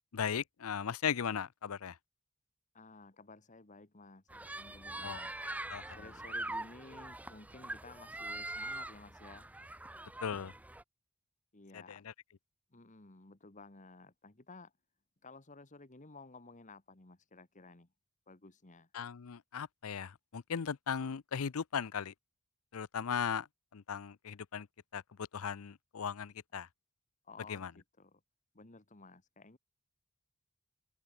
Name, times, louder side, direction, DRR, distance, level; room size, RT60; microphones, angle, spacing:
voice 1, 0.1-2.0 5.0-5.8 10.2-10.5 11.7-12.0 18.9-22.1 22.7-23.5 23.7-24.7 24.9-26.7 27.5-27.7, left 7 dB, 70° left, 0.6 m, -37 dB
voice 2, 2.7-5.4 5.9-9.5 11.5-12.1 12.7-14.7 15.2-17.9 18.3-18.9 27.2-28.2 28.5-29.6, left 3 dB, 35° left, 1.6 m, -55 dB
sound 1, 4.3-10.8, right 2 dB, 5° right, 0.5 m, -43 dB
open air
head